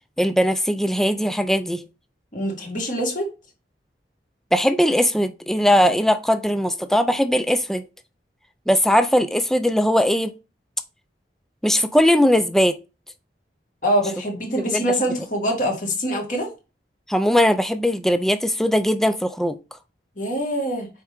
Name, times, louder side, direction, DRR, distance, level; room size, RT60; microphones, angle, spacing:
voice 1, 0.2-1.8 4.5-7.9 8.7-10.3 11.6-12.8 14.5-14.8 17.1-19.6, equal, ahead, 0.4 m, -19 dB
voice 2, 2.3-3.3 13.8-16.5 20.2-20.9, equal, 45° left, 2.4 m, -24 dB
6.4 x 4.7 x 3.5 m
head